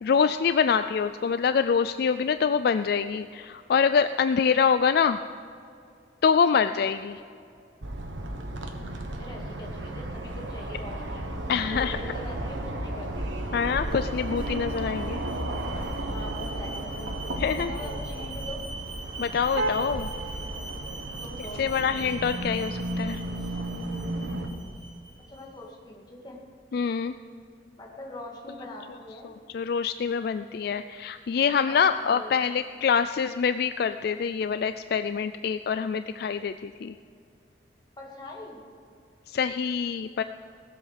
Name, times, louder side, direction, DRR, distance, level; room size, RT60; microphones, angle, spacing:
voice 1, 0.0-5.2 6.2-7.2 11.5-12.0 13.5-15.2 17.4-17.7 19.2-20.1 21.6-23.2 26.7-27.2 29.5-37.0 39.3-40.2, left 6 dB, 55° left, 11 dB, 0.3 m, -25 dB
sound 1, 7.8-24.5, right 1 dB, 80° right, 1.4 m, -33 dB
voice 2, 9.2-11.3 11.6-13.1 13.4-13.6 16.0-17.1 17.5-18.6 21.2-21.8 25.3-26.4 27.8-29.3 31.7-32.5 38.0-38.6, left 1 dB, 20° left, -2 dB, 2.2 m, -42 dB
Alarm, 13.5-25.4, right 3 dB, 25° right, 1.5 m, -42 dB
17.5 x 7.8 x 6.5 m, 2.4 s
head